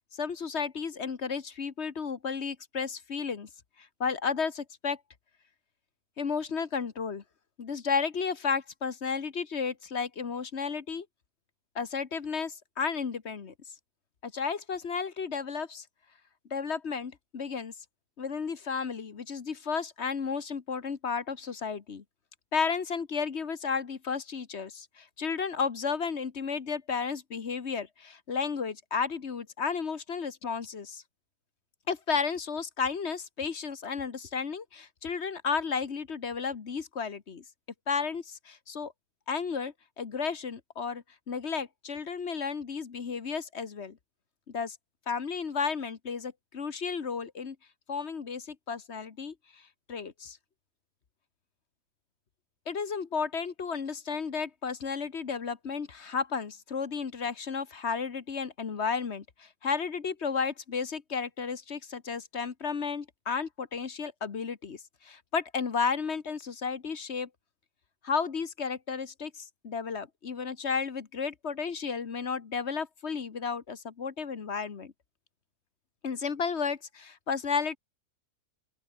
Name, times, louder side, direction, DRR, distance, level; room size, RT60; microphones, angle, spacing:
voice 1, 0.1-3.5 3.8-5.0 6.2-7.2 7.6-11.1 11.7-13.5 14.2-15.8 16.5-17.7 18.2-22.0 22.5-31.0 31.9-37.4 37.9-38.9 39.3-44.0 44.5-44.8 45.1-47.6 47.9-49.6 49.9-50.4 52.7-67.3 68.0-74.9 76.0-77.8, left 5 dB, 45° left, 1.5 m, -33 dB
open air
omnidirectional pair, 1.7 m